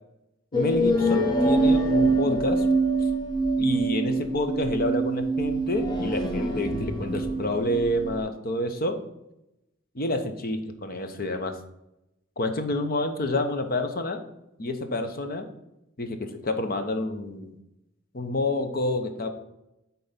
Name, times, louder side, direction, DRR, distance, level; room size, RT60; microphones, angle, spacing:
voice 1, 0.5-2.7 3.6-9.0 9.9-11.6 12.4-14.2 14.6-15.5 16.0-17.5 18.1-19.3, left 1 dB, 45° left, 7 dB, 0.9 m, -28 dB
sound 1, 0.5-8.2, right 2 dB, 20° left, 1.0 m, -24 dB
7.8 x 4.2 x 5.8 m, 0.88 s
head